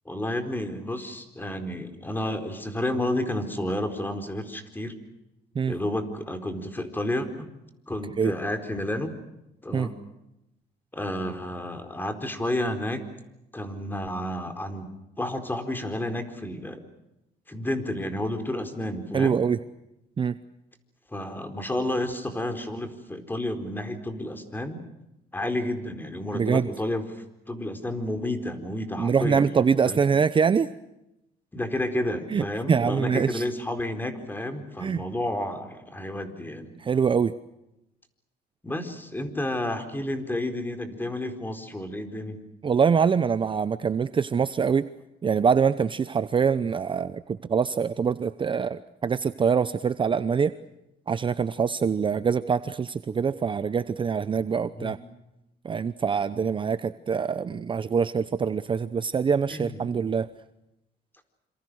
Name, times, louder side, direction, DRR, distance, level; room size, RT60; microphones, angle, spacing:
voice 1, 0.1-4.9 5.7-7.5 7.9-9.1 9.6-10.0 10.9-13.0 13.5-14.9 15.2-16.8 17.5-19.4 21.1-24.8 25.3-30.0 31.5-36.7 38.6-42.4 54.7-54.9 59.5-59.8, left 1 dB, 10° left, 8 dB, 4.4 m, -31 dB
voice 2, 19.1-19.6 20.2-20.3 26.3-26.7 29.0-30.7 32.3-33.4 34.8-35.0 36.8-37.3 42.6-44.9 45.2-50.5 51.1-55.0 55.6-60.3, right 6 dB, 30° right, 13 dB, 0.8 m, -24 dB
27.5 x 26.5 x 6.4 m, 0.89 s
cardioid pair, 110°, 17 cm